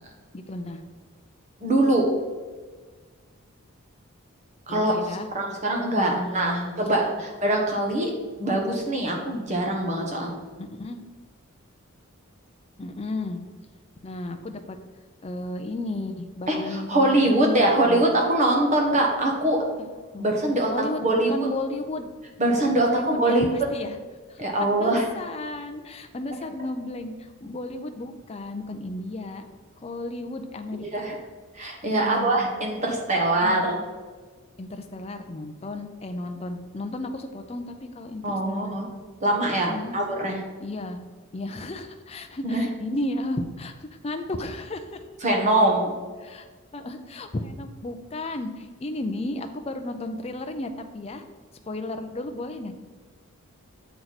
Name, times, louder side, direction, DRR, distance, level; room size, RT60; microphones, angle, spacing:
voice 1, 0.3-0.8 4.7-5.3 6.1-6.7 10.6-11.0 12.8-13.4 14.0-14.8 15.2-18.1 19.8-20.3 20.7-22.1 22.7-24.0 24.3-29.4 29.8-30.9 31.8-32.3 33.4-33.7 34.6-38.7 39.7-40.0 40.6-41.0 41.3-45.0 46.2-46.5 46.7-51.2 51.7-52.7, left 2 dB, 30° left, 6 dB, 0.5 m, -33 dB
voice 2, 1.6-2.1 4.7-4.9 5.3-8.1 8.4-10.3 16.5-19.6 20.2-20.7 21.0-21.3 22.4-23.5 24.4-25.0 30.8-31.1 31.5-33.8 38.2-39.0 39.2-40.4 42.4-42.7 45.2-45.9, right 1 dB, 35° right, 0 dB, 1.1 m, -23 dB
7.7 x 4.6 x 4.1 m, 1.4 s
head